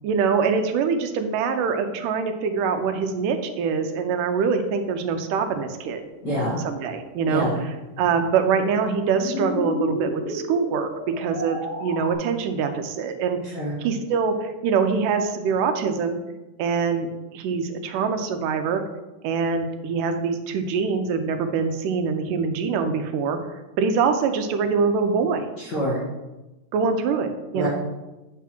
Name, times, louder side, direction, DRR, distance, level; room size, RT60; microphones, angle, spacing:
voice 1, 0.0-6.0 6.6-7.5 8.0-13.4 13.8-16.2 16.6-17.1 17.3-18.8 19.2-23.4 23.8-25.5 26.7-27.7, right 5 dB, 85° right, 7 dB, 2.3 m, -24 dB
voice 2, 6.2-6.6 7.3-7.6 13.5-13.7 25.6-26.0 27.5-27.7, equal, 45° left, -6 dB, 1.6 m, -25 dB
sound 1, 7.2-12.1, left 2 dB, 80° left, 3.0 m, -32 dB
8.4 x 3.5 x 5.9 m, 1.1 s
omnidirectional pair, 3.7 m